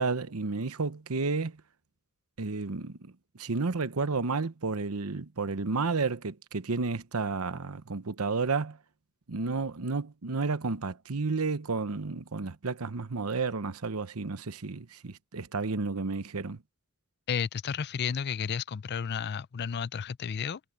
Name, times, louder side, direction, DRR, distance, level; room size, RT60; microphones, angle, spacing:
voice 1, 0.0-1.6 2.4-3.1 3.4-8.8 9.3-16.6, right 4 dB, 85° right, 0.9 m, -31 dB
voice 2, 17.3-20.6, left 7 dB, 50° left, 0.5 m, -32 dB
head